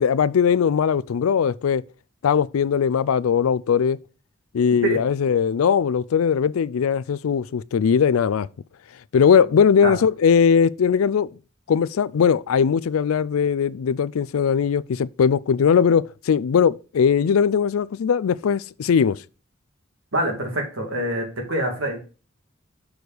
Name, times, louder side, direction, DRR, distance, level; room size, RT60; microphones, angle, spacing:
voice 1, 0.0-1.8 2.2-4.0 4.5-8.5 9.1-11.3 11.7-19.2, left 7 dB, 85° left, 0.4 m, -19 dB
voice 2, 20.1-22.0, right 1 dB, 70° right, 2.5 m, -25 dB
6.3 x 4.8 x 5.2 m
head